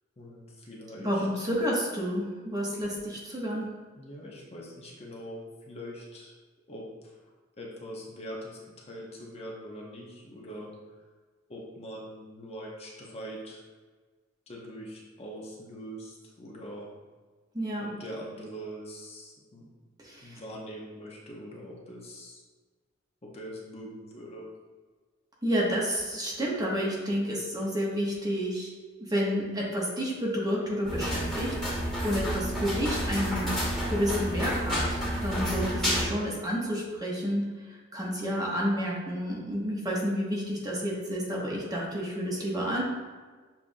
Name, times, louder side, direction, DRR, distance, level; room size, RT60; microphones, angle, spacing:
voice 1, 0.2-1.5 4.0-6.3 6.7-7.1 7.6-10.7 11.5-13.6 14.5-17.0 17.8-19.7 20.2-22.4 23.2-24.5, equal, 30° left, -3 dB, 0.7 m, -43 dB
voice 2, 1.0-3.7 17.5-18.0 20.0-20.4 25.4-31.7 32.0-33.5 33.9-42.8, equal, 20° right, -4 dB, 0.8 m, -30 dB
sound 1, 30.8-36.1, equal, 5° left, 1.2 m, -30 dB
7.0 x 2.4 x 2.6 m, 1.4 s
head